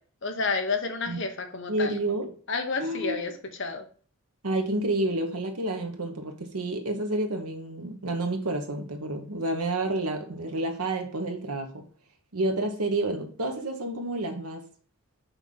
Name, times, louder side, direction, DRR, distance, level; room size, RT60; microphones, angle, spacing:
voice 1, 0.2-1.9 2.5-3.3 3.6-3.8, left 4 dB, 55° left, 1.0 m, -30 dB
voice 2, 1.7-2.4 2.8-3.3 4.4-11.8 12.3-14.6, right 2 dB, 90° right, 1.3 m, -29 dB
5.8 x 3.6 x 5.6 m
head